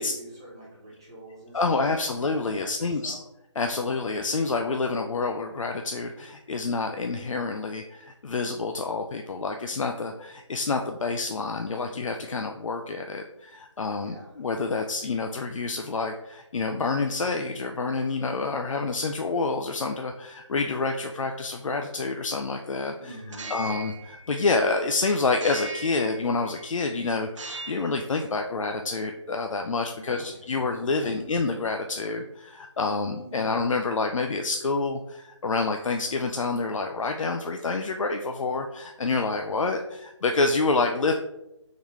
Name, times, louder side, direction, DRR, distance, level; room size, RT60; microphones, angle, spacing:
voice 1, 0.0-1.9 2.5-3.2 14.0-14.4 22.9-23.7 29.9-30.4 30.8-31.2 33.1-33.5, right 1 dB, 10° right, -6 dB, 0.5 m, -46 dB
voice 2, 1.5-3.2 3.6-23.2 23.5-41.1, left 3 dB, 85° left, 3 dB, 0.4 m, -28 dB
sound 1, 23.2-24.9 25.4-26.7 27.3-28.0, right 3 dB, 70° right, 0.5 m, -39 dB
3.7 x 3.0 x 3.5 m, 0.87 s
figure-of-eight pair, 170°, 16 cm